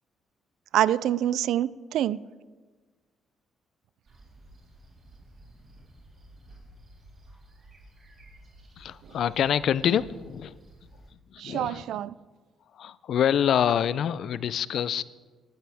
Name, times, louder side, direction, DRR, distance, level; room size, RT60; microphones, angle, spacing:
voice 1, 0.7-2.2 11.4-12.1, right 11 dB, 80° right, 20 dB, 0.3 m, -26 dB
sound 1, 4.0-11.1, right 1 dB, 45° right, 3.6 m, -53 dB
voice 2, 8.8-10.6 11.3-12.0 12.7-15.0, left 9 dB, 70° left, 18 dB, 0.4 m, -26 dB
18.5 x 11.5 x 3.5 m, 1.4 s
cardioid pair, 90°, 0 cm